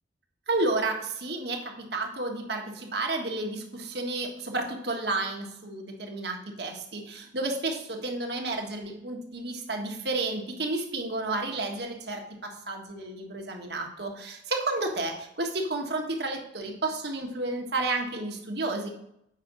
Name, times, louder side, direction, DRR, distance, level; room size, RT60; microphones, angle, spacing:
voice 1, 0.5-18.9, right 2 dB, 65° right, 2 dB, 1.5 m, -31 dB
8.2 x 5.8 x 3.9 m, 0.77 s
head